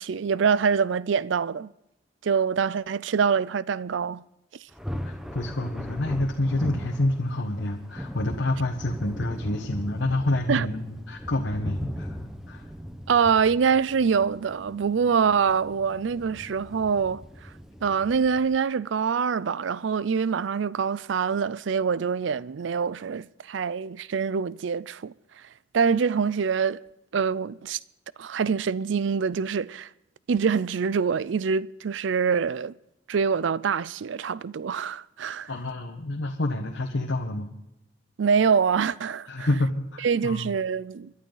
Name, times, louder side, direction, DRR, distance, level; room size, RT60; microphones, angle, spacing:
voice 1, 0.0-1.7 2.2-4.2 10.5-10.7 13.1-17.2 17.8-25.1 25.7-26.8 27.1-27.8 28.2-29.9 30.3-32.7 33.1-35.5 38.2-39.5 40.0-41.1, right 6 dB, 75° right, 0.4 m, -25 dB
Thunder, 4.7-18.6, equal, ahead, 0.9 m, -39 dB
voice 2, 5.0-12.7 35.5-37.5 39.3-40.5, left 1 dB, 80° left, 1.2 m, -28 dB
27.0 x 11.5 x 4.0 m
head